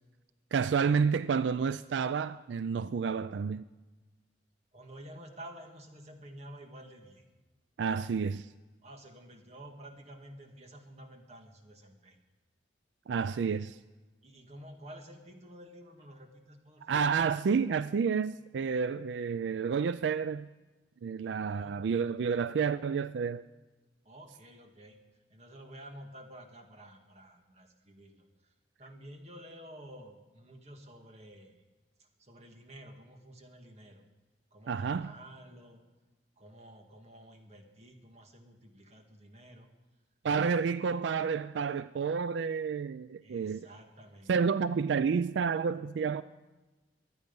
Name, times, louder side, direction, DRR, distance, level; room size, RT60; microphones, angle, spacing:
voice 1, 0.5-3.7 7.8-8.5 13.1-13.8 16.8-20.5 21.0-23.4 34.7-35.1 40.2-43.7 44.3-46.2, right 6 dB, 85° right, 0.4 m, -30 dB
voice 2, 4.7-7.2 8.8-12.2 14.2-16.9 21.4-21.8 24.1-25.0 25.3-28.5 28.8-31.6 32.0-34.0 34.5-35.8 36.4-39.7 40.3-40.7 43.2-44.4, right 1 dB, 40° right, 1.9 m, -51 dB
23.0 x 9.1 x 5.4 m
head